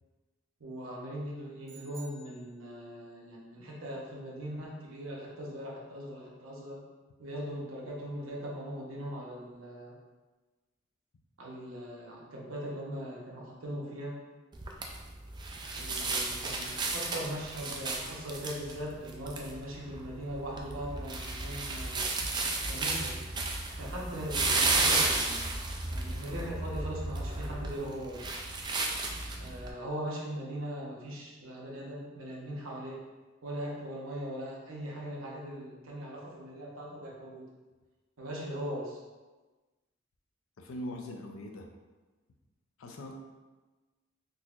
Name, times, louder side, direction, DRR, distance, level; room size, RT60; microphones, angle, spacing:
voice 1, 0.6-6.8 7.2-9.9 11.4-14.2 15.7-22.1 22.7-23.2 23.8-25.4 25.9-28.4 29.4-33.0 33.4-37.5 38.2-39.0, equal, 75° right, -3 dB, 0.8 m, -40 dB
sound 1, 1.6-3.1, right 5 dB, 40° right, 0.7 m, -54 dB
sound 2, 14.5-29.7, right 3 dB, 20° right, 0.3 m, -33 dB
voice 2, 40.6-41.7 42.8-43.1, left 1 dB, 75° left, 3 dB, 0.5 m, -41 dB
3.8 x 2.9 x 2.4 m, 1.2 s
head